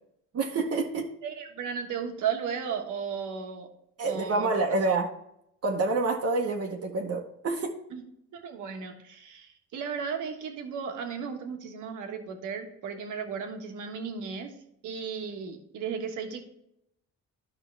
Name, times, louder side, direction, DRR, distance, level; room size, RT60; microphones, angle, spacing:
voice 1, 0.3-1.1 4.0-5.1 5.6-7.7, right 3 dB, 55° right, 1 dB, 1.1 m, -27 dB
voice 2, 1.2-3.7 4.0-4.8 7.9-8.0 8.3-14.5 14.8-16.4, right 6 dB, 80° right, 4 dB, 1.4 m, -35 dB
11.0 x 5.9 x 3.3 m, 0.77 s
cardioid pair, 90°, 30 cm